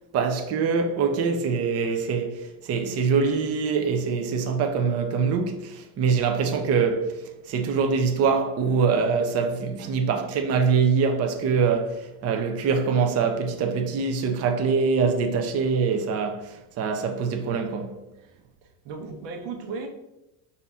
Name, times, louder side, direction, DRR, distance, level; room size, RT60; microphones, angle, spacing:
voice 1, 0.1-7.1 7.5-18.0, right 5 dB, 35° right, 0.5 m, -24 dB
voice 2, 18.6-19.9, right 4 dB, 90° right, 1.0 m, -36 dB
5.4 x 2.7 x 3.5 m
cardioid pair, 120°, 47 cm